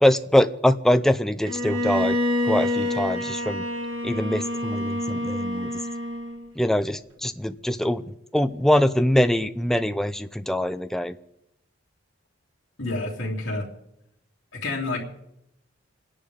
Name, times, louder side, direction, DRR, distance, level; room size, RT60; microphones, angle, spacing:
voice 1, 0.0-2.2 2.4-3.7 4.0-5.7 6.6-8.0 8.3-11.2, left 1 dB, ahead, 9 dB, 0.5 m, -23 dB
Bowed string instrument, 1.4-6.5, left 1 dB, 80° right, 1.7 m, -27 dB
voice 2, 12.8-13.7 14.5-15.0, left 2 dB, 70° left, -5 dB, 3.1 m, -29 dB
28.0 x 10.5 x 3.7 m, 0.82 s
head